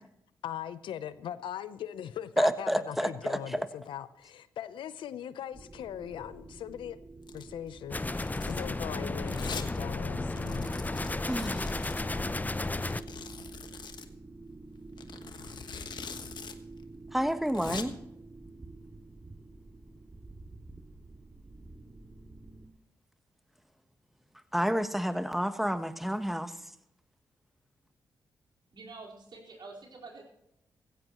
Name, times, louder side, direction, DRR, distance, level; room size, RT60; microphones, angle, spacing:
voice 1, 0.4-7.0 7.3-10.7, left 10 dB, 80° left, 15 dB, 0.7 m, -40 dB
voice 2, 2.4-3.6 11.3-11.7 17.1-17.9 24.5-26.5, equal, ahead, 10 dB, 1.2 m, -29 dB
sound 1, 5.5-22.7, right 3 dB, 35° right, 2.3 m, -48 dB
Domestic sounds home sounds, 7.2-7.5 8.0-8.7 9.3-9.7 10.0-10.1 10.3-12.0 12.8-14.1 15.0-16.5 16.8-16.9 17.3-17.8, left 6 dB, 60° left, 1.3 m, -43 dB
sound 2, 7.9-13.0, left 2 dB, 20° left, 0.7 m, -33 dB
voice 3, 28.7-30.2, right 3 dB, 60° right, -2 dB, 4.4 m, -47 dB
16.0 x 15.0 x 3.1 m, 0.82 s
supercardioid pair, 40°, 8 cm